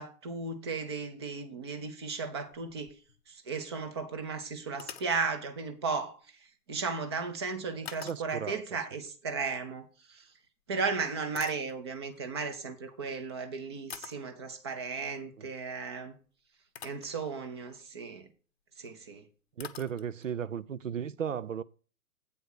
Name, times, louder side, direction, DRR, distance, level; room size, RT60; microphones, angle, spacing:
voice 1, 0.0-2.9 3.3-6.2 6.7-10.2 10.7-16.1 16.8-18.3 18.8-19.2, right 4 dB, 20° right, 0.6 m, -35 dB
sound 1, 2.3-3.4 3.7-3.8 4.7-5.2 7.9-8.6 10.2-10.4 11.0-12.2 13.2-13.3 13.9-14.3 16.1-16.2 16.8-17.2 17.6-17.9 18.9-19.0 19.1-19.2 19.6-20.4, left 8 dB, 45° left, 0.7 m, -47 dB
voice 2, 8.0-8.6 15.4-15.5 19.6-21.6, right 8 dB, 60° right, 0.5 m, -35 dB
8.4 x 4.4 x 6.4 m
figure-of-eight pair, 125°, 44 cm